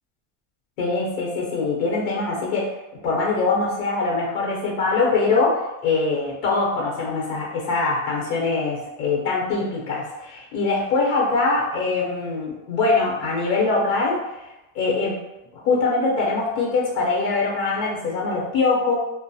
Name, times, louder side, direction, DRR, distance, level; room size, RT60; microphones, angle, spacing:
voice 1, 0.8-2.7 3.0-14.2 14.7-15.2 15.5-18.9, left 3 dB, 85° left, -3 dB, 0.9 m, -23 dB
2.2 x 2.0 x 2.7 m, 0.98 s
cardioid pair, 155°, 41 cm